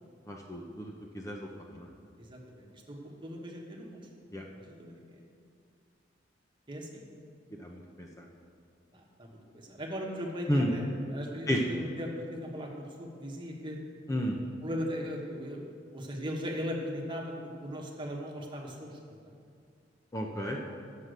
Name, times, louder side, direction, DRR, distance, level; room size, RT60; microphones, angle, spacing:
voice 1, 0.3-1.5 1.8-1.9 4.3-4.4 7.6-8.2 10.5-10.7 11.5-11.7 14.1-14.4 20.1-20.6, equal, 15° left, 0 dB, 0.7 m, -32 dB
voice 2, 2.2-4.1 4.5-5.2 6.7-7.0 8.9-10.8 11.1-13.8 14.6-19.0, equal, 25° right, -1 dB, 1.4 m, -39 dB
9.8 x 7.5 x 6.6 m, 2.3 s
head